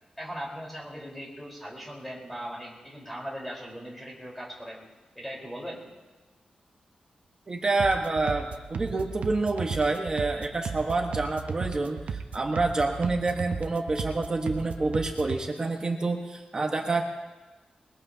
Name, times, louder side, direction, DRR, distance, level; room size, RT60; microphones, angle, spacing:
voice 1, 0.2-4.8 5.1-5.8, equal, 5° left, -3 dB, 4.2 m, -39 dB
voice 2, 7.5-17.0, right 3 dB, 30° right, 2 dB, 1.3 m, -28 dB
sound 1, 7.8-15.4, right 6 dB, 70° right, 0.8 m, -36 dB
21.5 x 21.5 x 2.8 m, 1.2 s
wide cardioid pair, 150°, 2 cm